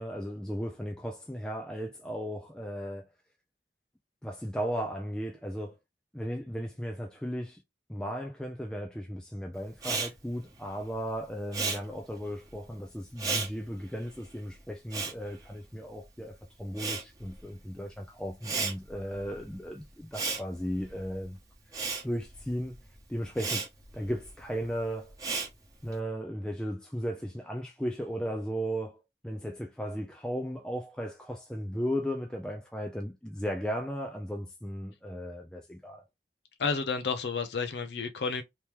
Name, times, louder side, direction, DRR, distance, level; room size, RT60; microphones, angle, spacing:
voice 1, 0.0-3.1 4.2-5.8 6.1-7.6 7.9-21.4 22.0-22.8 23.1-25.2 25.8-36.0, equal, 5° left, 0.4 m, -36 dB
Respiratory sounds, 9.7-16.2 16.5-25.9, right 4 dB, 20° right, 1.1 m, -36 dB
voice 2, 36.6-38.4, left 5 dB, 75° left, 0.5 m, -31 dB
3.0 x 2.9 x 3.5 m
head